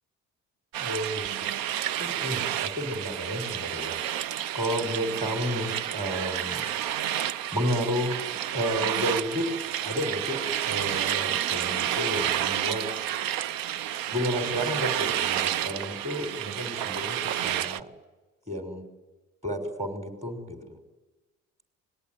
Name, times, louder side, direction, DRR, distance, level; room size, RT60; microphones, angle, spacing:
sound 1, 0.7-17.8, right 11 dB, 80° right, 0.8 m, -30 dB
voice 1, 0.8-1.5 2.0-4.0 4.5-6.6 7.5-9.5 9.8-12.8 14.1-17.9 18.5-18.8 19.4-20.7, equal, 20° right, 6 dB, 6.0 m, -31 dB
25.5 x 20.0 x 9.6 m, 1.2 s
supercardioid pair, 65°, 35 cm